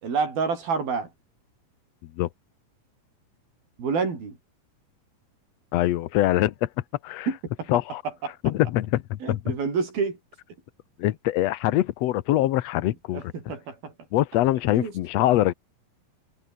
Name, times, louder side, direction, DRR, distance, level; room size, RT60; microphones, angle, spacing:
voice 1, 0.0-1.1 3.8-4.4 7.3-7.7 8.2-8.3 9.2-10.2 13.1-13.9 14.7-14.9, right 5 dB, 85° right, 7.8 m, -28 dB
voice 2, 5.7-6.7 7.0-7.3 7.7-8.0 8.4-9.4 11.0-13.2 14.1-15.5, left 15 dB, 75° left, 1.5 m, -23 dB
omnidirectional pair, 4.2 m